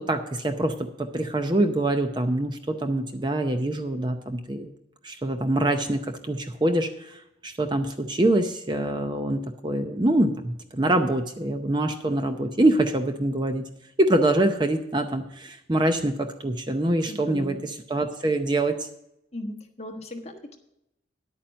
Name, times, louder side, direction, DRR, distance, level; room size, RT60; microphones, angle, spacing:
voice 1, 0.0-4.7 5.0-7.2 7.4-13.7 14.0-18.8, right 1 dB, 25° right, 7 dB, 0.6 m, -25 dB
voice 2, 17.1-17.6 19.3-20.6, left 1 dB, 35° left, 2 dB, 1.3 m, -37 dB
10.5 x 8.8 x 5.2 m, 0.81 s
head